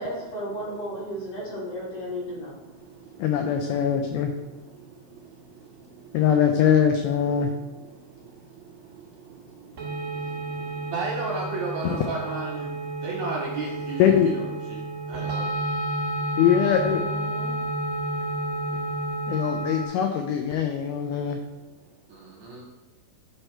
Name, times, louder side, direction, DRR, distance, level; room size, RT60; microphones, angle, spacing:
voice 1, 0.0-2.5 16.8-17.5, equal, 45° left, -7 dB, 2.9 m, -34 dB
voice 2, 3.2-4.3 6.1-7.5 11.8-12.0 14.0-14.3 16.4-17.0 19.3-21.4, left 8 dB, 85° left, 5 dB, 1.9 m, -22 dB
sound 1, 9.8-19.9, right 1 dB, 55° right, 1.1 m, -31 dB
voice 3, 10.9-12.7 13.0-14.8 15.1-15.5 22.4-22.6, right 3 dB, 75° right, -2 dB, 1.8 m, -32 dB
8.9 x 3.3 x 4.4 m, 1.2 s
omnidirectional pair, 4.2 m